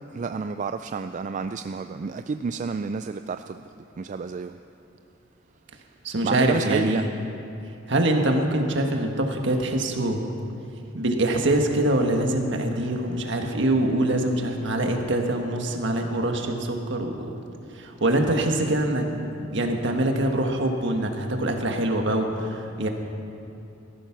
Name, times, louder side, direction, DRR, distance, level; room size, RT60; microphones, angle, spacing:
voice 1, 0.1-3.7 4.0-4.6 6.2-7.1, right 4 dB, 40° right, 9 dB, 0.3 m, -30 dB
voice 2, 6.0-7.1 7.9-10.2 10.9-17.3 17.7-22.9, right 1 dB, 65° right, 3 dB, 1.6 m, -24 dB
16.5 x 13.5 x 6.0 m, 2.8 s
head